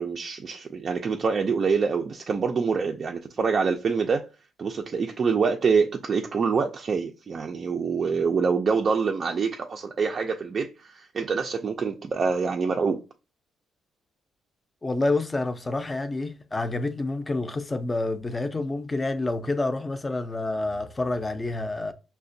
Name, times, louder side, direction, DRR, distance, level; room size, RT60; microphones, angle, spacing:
voice 1, 0.0-4.3 4.6-13.0, right 5 dB, 45° right, 0.4 m, -25 dB
voice 2, 14.8-21.9, left 2 dB, 20° left, 0.5 m, -28 dB
5.7 x 2.1 x 2.6 m
cardioid pair, 90°, 0 cm